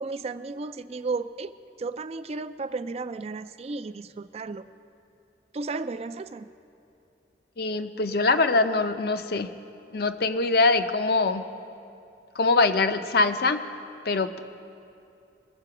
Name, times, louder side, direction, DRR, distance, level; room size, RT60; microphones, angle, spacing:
voice 1, 0.0-4.7 5.5-6.5, right 3 dB, 35° right, 12 dB, 0.4 m, -34 dB
voice 2, 7.6-9.5 9.9-11.4 12.4-13.6 14.1-14.4, left 3 dB, 55° left, 9 dB, 0.6 m, -23 dB
22.0 x 7.6 x 4.8 m, 2.6 s
head